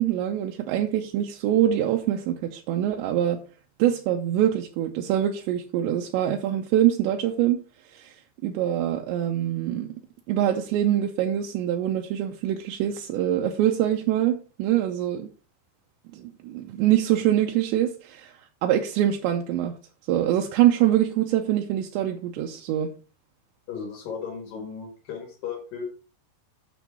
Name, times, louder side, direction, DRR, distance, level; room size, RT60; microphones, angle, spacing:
voice 1, 0.0-3.4 3.8-7.6 7.9-8.1 8.4-9.9 10.3-15.3 16.1-18.3 18.6-19.7 20.1-22.9, right 11 dB, 80° right, 2.8 m, -24 dB
voice 2, 23.7-25.8, left 6 dB, 55° left, 3.2 m, -35 dB
8.3 x 6.9 x 4.3 m
omnidirectional pair, 5.5 m